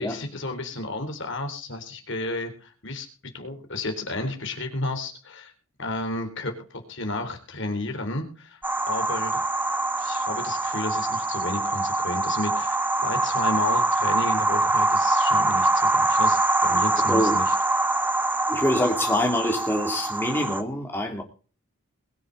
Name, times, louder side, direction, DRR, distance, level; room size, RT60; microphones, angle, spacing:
voice 1, 0.0-3.1 3.3-5.5 5.8-8.6 8.9-9.4 10.0-17.5, left 2 dB, 55° left, 3.8 m, -32 dB
sound 1, 8.6-20.6, right 2 dB, 10° right, 0.7 m, -24 dB
voice 2, 17.0-17.4 18.5-21.2, left 1 dB, 10° left, 3.0 m, -25 dB
22.0 x 7.6 x 4.1 m
head